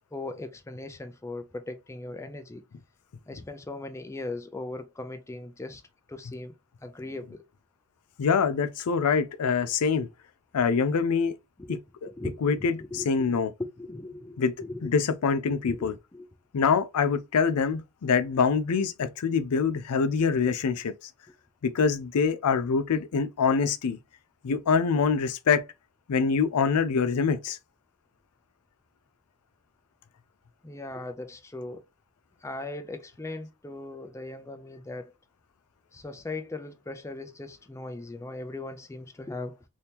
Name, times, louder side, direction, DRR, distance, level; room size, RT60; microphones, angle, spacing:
voice 1, 0.1-2.6 3.3-5.8 6.1-6.5 6.8-7.4 11.6-11.8 12.1-13.4 13.8-14.9 15.5-16.3 30.6-31.8 32.4-35.1 35.9-39.6, left 2 dB, 15° left, 0.4 m, -39 dB
voice 2, 8.2-10.1 10.5-11.4 12.4-13.5 14.4-14.5 14.8-15.9 16.5-20.9 21.6-24.0 24.4-25.6 26.1-27.6, left 5 dB, 80° left, 0.4 m, -25 dB
2.9 x 2.7 x 3.4 m
head